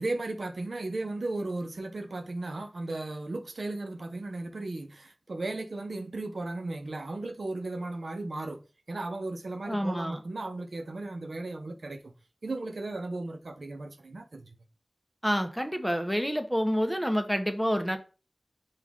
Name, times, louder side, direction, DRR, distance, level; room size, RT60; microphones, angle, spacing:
voice 1, 0.0-8.6 8.9-12.1 12.4-14.5, right 2 dB, 85° right, 0.7 m, -35 dB
voice 2, 9.7-10.2 15.2-18.0, equal, ahead, 0.7 m, -28 dB
6.0 x 2.5 x 3.5 m
wide cardioid pair, 55°, 0 cm